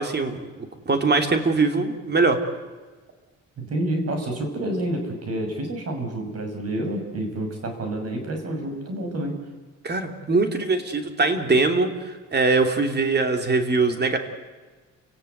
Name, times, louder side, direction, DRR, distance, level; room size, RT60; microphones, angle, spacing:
voice 1, 0.0-2.4 9.8-14.2, right 3 dB, 35° right, 6 dB, 3.0 m, -22 dB
voice 2, 3.6-9.4, right 1 dB, 55° right, 5 dB, 6.0 m, -28 dB
30.0 x 18.0 x 8.2 m, 1.3 s
cardioid pair, 90°, 30 cm